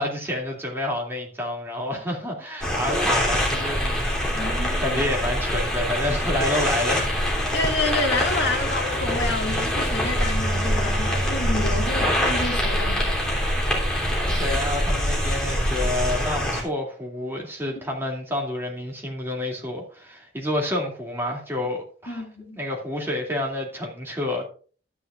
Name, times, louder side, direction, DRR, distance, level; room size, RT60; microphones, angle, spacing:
voice 1, 0.0-7.0 14.2-22.2 22.6-24.5, left 1 dB, 10° right, 2.4 m, -29 dB
sound 1, 2.6-16.6, equal, 5° left, 3.0 m, -24 dB
voice 2, 4.3-5.0 7.5-13.1 22.1-22.6, left 3 dB, 65° left, 2.0 m, -29 dB
13.0 x 10.0 x 2.4 m
head